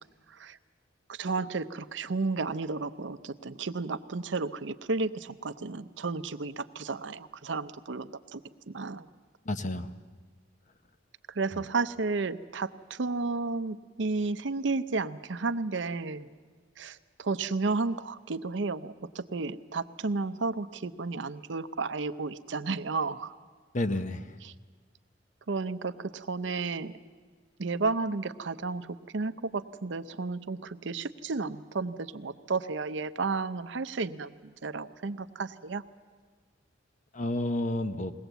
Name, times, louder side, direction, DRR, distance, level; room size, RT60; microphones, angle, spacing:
voice 1, 1.1-8.4 8.7-9.1 11.3-16.3 16.8-23.3 24.4-24.5 25.5-26.9 27.6-35.8, right 3 dB, 70° right, 12 dB, 0.7 m, -32 dB
voice 2, 9.5-9.9 11.5-11.6 23.7-24.3 37.1-38.1, left 1 dB, 40° left, 10 dB, 0.9 m, -30 dB
21.5 x 18.0 x 8.1 m, 1.5 s
head